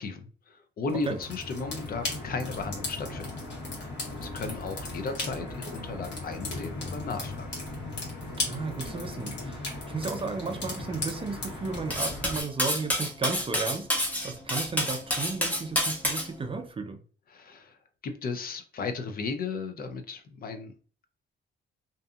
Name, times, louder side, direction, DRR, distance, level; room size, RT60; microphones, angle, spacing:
voice 1, 0.0-3.3 4.2-7.5 17.3-17.8 18.0-20.7, left 4 dB, 50° left, 0.5 m, -35 dB
sound 1, 0.9-12.4, left 2 dB, 65° left, 1.3 m, -36 dB
voice 2, 8.4-17.0, right 4 dB, 25° right, 0.5 m, -34 dB
Cutlery silverware, 11.9-16.3, equal, 5° left, 0.7 m, -28 dB
2.6 x 2.5 x 2.4 m
cardioid pair, 90°, 20 cm